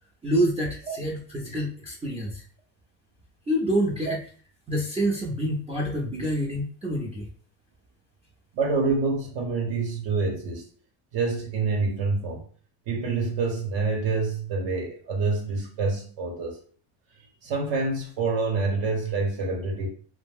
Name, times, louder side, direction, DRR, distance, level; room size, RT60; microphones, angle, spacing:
voice 1, 0.2-2.4 3.5-4.2 4.7-7.3, equal, 15° right, 0.4 m, -27 dB
voice 2, 8.5-10.7 11.1-12.5 12.9-16.6 17.4-19.9, right 3 dB, 70° right, 0.9 m, -27 dB
2.3 x 2.1 x 3.4 m
cardioid pair, 110°, 47 cm